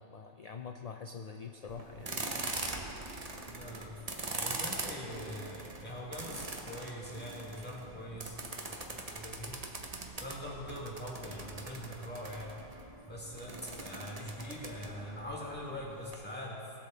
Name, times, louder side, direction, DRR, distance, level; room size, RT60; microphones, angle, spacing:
voice 1, 0.0-2.2, left 5 dB, 55° left, 4 dB, 0.4 m, -45 dB
sound 1, 1.7-16.1, right 2 dB, 35° right, 1.0 m, -42 dB
voice 2, 3.5-3.9 4.4-9.7 10.2-12.5 13.0-16.7, equal, 10° left, -5 dB, 1.9 m, -43 dB
19.5 x 7.3 x 3.9 m, 2.6 s
omnidirectional pair, 1.2 m